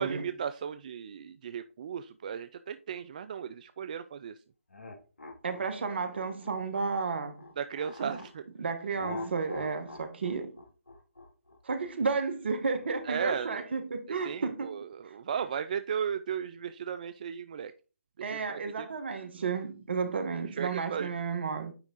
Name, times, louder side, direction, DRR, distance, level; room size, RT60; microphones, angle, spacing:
voice 1, 0.0-4.3 7.6-8.5 13.0-13.6 14.1-17.7 18.2-18.9 20.5-21.1, right 7 dB, 35° right, 0.4 m, -36 dB
sound 1, 4.7-8.3 8.9-13.4, left 2 dB, 70° left, 2.0 m, -44 dB
voice 2, 5.4-7.4 8.0-8.2 8.6-10.6 11.6-14.8 18.2-21.7, right 4 dB, 50° right, 1.2 m, -32 dB
9.5 x 3.5 x 3.8 m
figure-of-eight pair, 155°, 7 cm